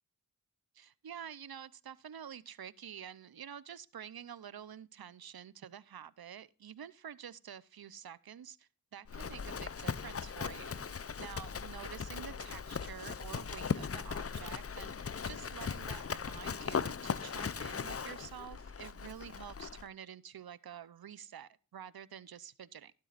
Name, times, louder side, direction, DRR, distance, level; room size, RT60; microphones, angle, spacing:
voice 1, 0.7-10.8 11.2-22.9, right 9 dB, 75° right, 0.7 m, -49 dB
Livestock farm animals working animals, 9.1-19.9, left 6 dB, 40° left, 0.6 m, -39 dB
13.5 x 12.0 x 2.5 m
cardioid pair, 45°, 37 cm